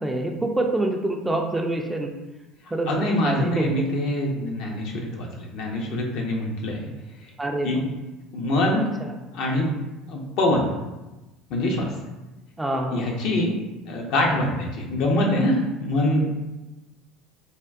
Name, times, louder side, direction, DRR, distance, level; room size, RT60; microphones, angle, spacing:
voice 1, 0.0-2.1 2.7-2.9 3.2-3.7 7.4-7.9 9.0-9.1 12.6-13.1, right 1 dB, 10° right, 2 dB, 0.4 m, -26 dB
voice 2, 2.9-6.9 7.6-7.8 8.3-8.8 9.3-9.7 10.1-10.7 11.5-11.9 12.9-13.5 13.9-16.3, left 1 dB, 60° left, 0 dB, 0.6 m, -24 dB
3.4 x 2.2 x 2.4 m, 1.1 s
hypercardioid pair, 65°, 0 cm